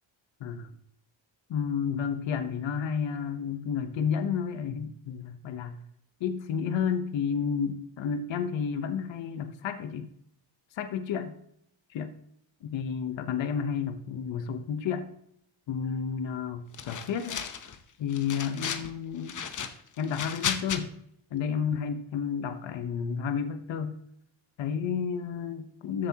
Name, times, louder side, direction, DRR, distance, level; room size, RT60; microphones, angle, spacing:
voice 1, 0.4-0.7 1.5-5.8 6.2-10.1 10.8-11.3 11.9-12.1 12.6-15.1 15.7-17.4 18.0-19.5 20.0-20.9 21.3-24.0 24.6-26.1, left 7 dB, 65° left, 10 dB, 0.9 m, -31 dB
sound 1, 16.7-17.8 18.1-18.9 19.2-20.8, left 7 dB, 40° left, 0.8 m, -34 dB
13.5 x 7.3 x 2.9 m, 0.72 s
cardioid pair, 135°, 48 cm